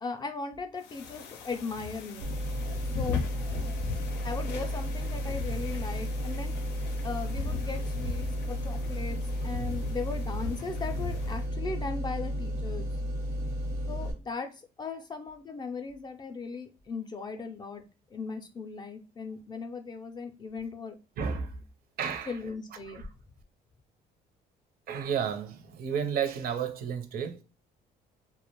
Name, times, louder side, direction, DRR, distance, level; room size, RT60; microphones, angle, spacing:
voice 1, 0.0-2.3 3.0-3.2 4.2-6.6 7.0-12.9 13.9-17.8 18.1-21.0 22.3-23.1, left 4 dB, 25° left, 0.4 m, -38 dB
sound 1, 0.8-11.5, left 6 dB, 85° left, 0.5 m, -39 dB
sound 2, 2.2-14.1, equal, 85° right, 0.9 m, -33 dB
voice 2, 21.2-21.6 22.0-22.4 22.9-23.1 24.9-27.4, right 7 dB, 65° right, 0.6 m, -32 dB
2.4 x 2.0 x 2.9 m
cardioid pair, 110°, 17 cm